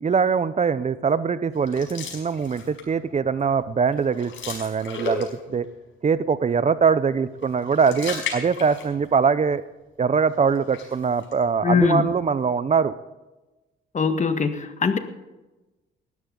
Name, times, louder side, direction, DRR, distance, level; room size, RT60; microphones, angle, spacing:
voice 1, 0.0-5.7 6.0-9.6 10.0-12.9, right 6 dB, 35° right, 15 dB, 0.7 m, -22 dB
sound 1, 1.6-3.0 3.4-3.6 3.9-5.6 7.4-9.2 9.5-9.6 10.5-11.3, left 4 dB, 75° left, 5.2 m, -35 dB
voice 2, 11.6-12.1 13.9-15.0, left 5 dB, 35° left, 9 dB, 1.7 m, -21 dB
19.0 x 13.5 x 3.9 m, 1.1 s
cardioid pair, 90°, 20 cm